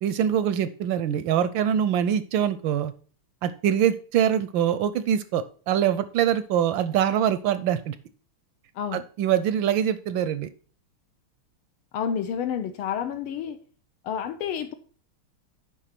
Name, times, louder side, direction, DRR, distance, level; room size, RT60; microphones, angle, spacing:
voice 1, 0.0-2.9 3.4-8.0 8.9-10.5, right 9 dB, 75° right, 14 dB, 1.1 m, -24 dB
voice 2, 11.9-13.6 14.0-14.7, left 8 dB, 80° left, 7 dB, 1.6 m, -29 dB
10.0 x 3.7 x 5.8 m, 0.41 s
omnidirectional pair, 2.4 m